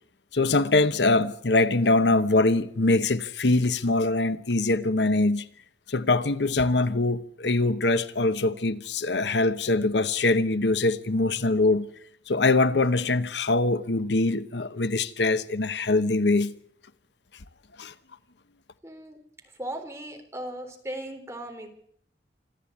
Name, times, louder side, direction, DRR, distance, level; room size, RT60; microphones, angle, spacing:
voice 1, 0.3-5.4 5.9-11.9 12.3-16.5 17.8-17.9, left 2 dB, 80° left, 1.0 m, -23 dB
voice 2, 18.8-19.2 19.4-21.7, right 1 dB, 15° right, 3.7 m, -37 dB
26.0 x 13.0 x 8.6 m
head